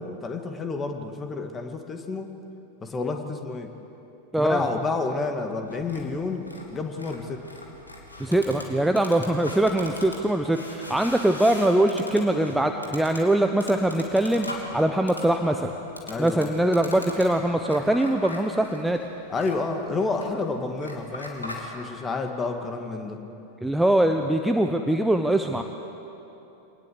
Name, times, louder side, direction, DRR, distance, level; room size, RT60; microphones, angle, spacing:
voice 1, 0.0-2.3 2.8-3.7 4.4-7.4 16.1-16.5 19.3-23.2, left 3 dB, 20° left, 5 dB, 2.1 m, -30 dB
voice 2, 4.3-4.6 8.2-15.7 16.2-19.0 23.6-25.6, right 1 dB, 5° right, 5 dB, 1.0 m, -22 dB
sound 1, 5.7-21.7, left 1 dB, 80° left, 3.2 m, -41 dB
26.0 x 19.0 x 8.1 m, 3.0 s
figure-of-eight pair, 90°, 0 cm